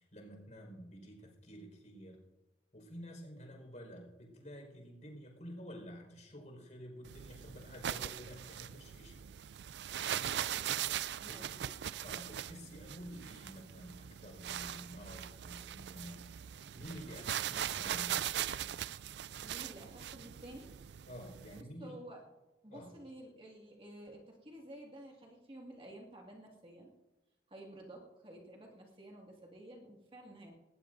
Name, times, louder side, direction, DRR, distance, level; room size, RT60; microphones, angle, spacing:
voice 1, 0.0-2.2 2.7-9.2 11.2-11.6 12.0-16.3 16.8-18.2 21.1-22.0 22.7-23.0, equal, 45° left, 1 dB, 5.0 m, -50 dB
sound 1, 7.0-21.6, right 10 dB, 70° right, 0.4 m, -40 dB
voice 2, 11.2-11.7 19.4-20.7 21.8-22.2 22.6-26.9 27.5-30.5, right 1 dB, 30° right, -1 dB, 2.1 m, -52 dB
19.0 x 19.0 x 2.7 m, 1.1 s
head